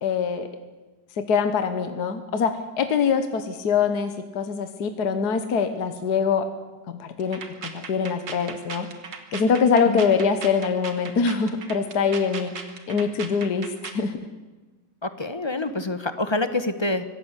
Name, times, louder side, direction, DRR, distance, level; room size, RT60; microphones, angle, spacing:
voice 1, 0.0-0.5 1.2-6.5 7.0-8.9 9.3-12.5 12.9-14.1, left 6 dB, 60° left, 8 dB, 1.8 m, -23 dB
sound 1, 7.2-14.0, right 5 dB, 75° right, 2.5 m, -38 dB
voice 2, 15.0-17.0, left 2 dB, 20° left, 10 dB, 0.9 m, -26 dB
25.0 x 16.5 x 8.2 m, 1.2 s
omnidirectional pair, 2.0 m